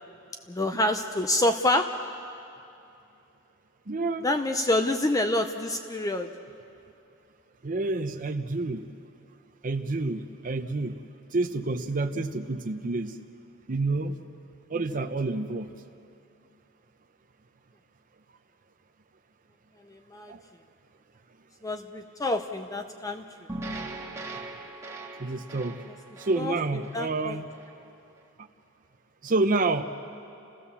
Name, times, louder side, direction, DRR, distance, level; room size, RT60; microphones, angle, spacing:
voice 1, 0.5-1.9 4.2-6.3 19.8-20.3 21.6-23.2 26.4-26.5 26.9-27.4, left 1 dB, 15° left, 6 dB, 0.6 m, -27 dB
voice 2, 3.9-4.3 5.3-5.4 7.6-8.9 9.6-11.0 11.3-13.2 13.7-14.2 14.7-15.7 20.3-20.4 25.2-25.8 26.2-27.5 29.2-29.8, right 3 dB, 40° right, 5 dB, 0.7 m, -28 dB
sound 1, 23.5-27.8, right 2 dB, 15° right, 1.7 m, -40 dB
29.5 x 15.5 x 7.1 m, 2.7 s
head